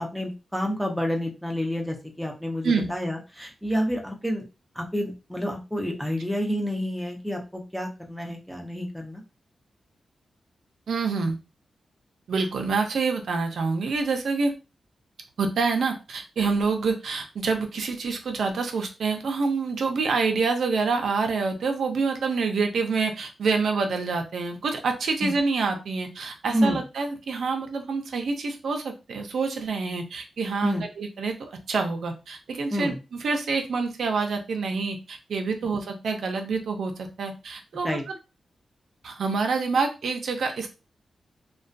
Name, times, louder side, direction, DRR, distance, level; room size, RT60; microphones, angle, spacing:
voice 1, 0.0-4.4 4.8-9.2 25.2-25.3 26.5-26.8 30.6-30.8 32.7-33.0 37.8-38.0, equal, ahead, 1 dB, 0.5 m, -29 dB
voice 2, 10.9-11.4 12.3-14.6 15.4-31.3 31.7-38.2 39.0-40.7, right 4 dB, 80° right, 4 dB, 0.4 m, -27 dB
2.3 x 2.2 x 2.5 m, 0.29 s
wide cardioid pair, 125°, 0 cm